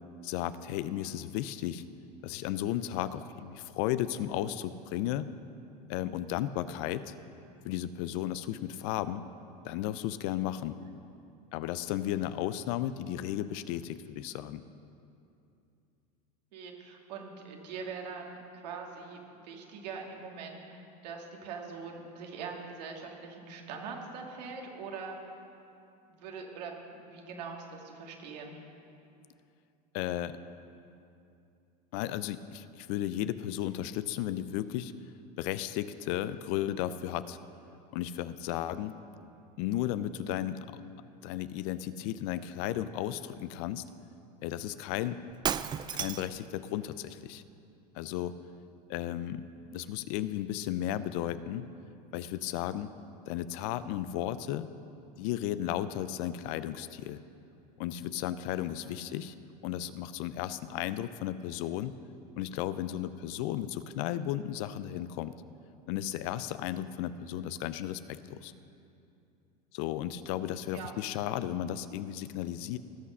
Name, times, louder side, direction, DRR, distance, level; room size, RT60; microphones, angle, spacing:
voice 1, 0.2-1.8 2.2-5.3 5.9-7.1 7.6-9.2 9.6-10.8 11.5-14.6 29.9-30.4 31.9-34.9 35.4-37.4 37.9-38.9 39.6-40.8 41.2-43.8 44.4-45.2 45.9-47.4 47.9-48.4 48.9-49.4 49.7-51.7 52.1-52.9 53.3-54.7 55.2-57.2 57.8-59.3 59.6-62.0 62.4-65.3 65.9-68.5 69.7-72.8, left 12 dB, 60° left, 14 dB, 0.6 m, -34 dB
voice 2, 16.5-25.2 26.1-28.6 58.8-59.1 70.7-70.9, right 5 dB, 75° right, 1 dB, 2.1 m, -43 dB
Shatter, 45.3-46.4, right 8 dB, 20° right, 0.3 m, -32 dB
18.0 x 6.3 x 5.5 m, 2.7 s
hypercardioid pair, 100°, 21 cm